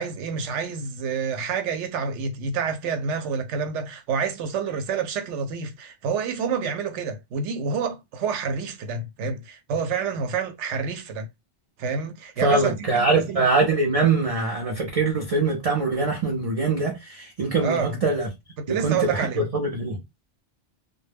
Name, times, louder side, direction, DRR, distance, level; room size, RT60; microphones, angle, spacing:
voice 1, 0.0-11.3 11.8-13.5 17.6-18.0 18.6-19.5, right 5 dB, 75° right, 0.9 m, -28 dB
voice 2, 12.4-18.3 18.7-20.0, right 3 dB, 50° right, 0.4 m, -23 dB
2.1 x 2.1 x 3.3 m
omnidirectional pair, 1.2 m